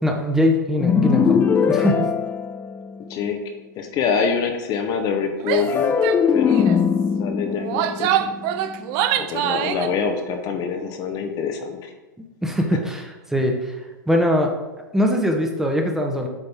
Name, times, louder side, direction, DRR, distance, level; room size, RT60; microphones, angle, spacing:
voice 1, 0.0-2.1 12.4-13.8 14.1-14.5 14.9-16.3, equal, 5° right, 2 dB, 1.0 m, -21 dB
sound 1, 0.8-3.2 5.6-8.9, left 6 dB, 20° left, 0.5 m, -21 dB
voice 2, 3.8-6.0 6.3-6.7 7.2-8.3 9.2-11.9, left 6 dB, 40° left, 5 dB, 0.9 m, -25 dB
Female speech woman speaking / Yell, 5.4-5.7 6.0-6.2 6.5-6.8 7.5-9.9, right 10 dB, 45° right, 0.5 m, -24 dB
8.2 x 4.2 x 3.5 m, 1.1 s
hypercardioid pair, 110°, 11 cm